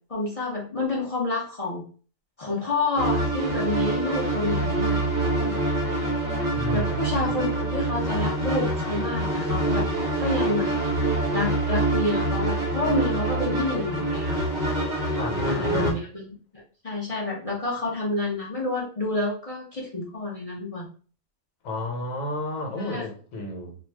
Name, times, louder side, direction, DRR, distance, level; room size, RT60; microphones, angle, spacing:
voice 1, 0.1-1.8 2.4-5.7 6.7-9.9 10.2-10.7 11.3-14.4 15.5-16.3 16.8-20.9 22.8-23.1, left 2 dB, 45° left, 0.4 m, -29 dB
sound 1, 2.9-15.9, right 2 dB, 45° right, 0.5 m, -26 dB
voice 2, 6.5-7.4 15.2-16.0 21.6-23.7, left 1 dB, 75° left, 1.2 m, -32 dB
2.4 x 2.3 x 3.3 m
omnidirectional pair, 1.5 m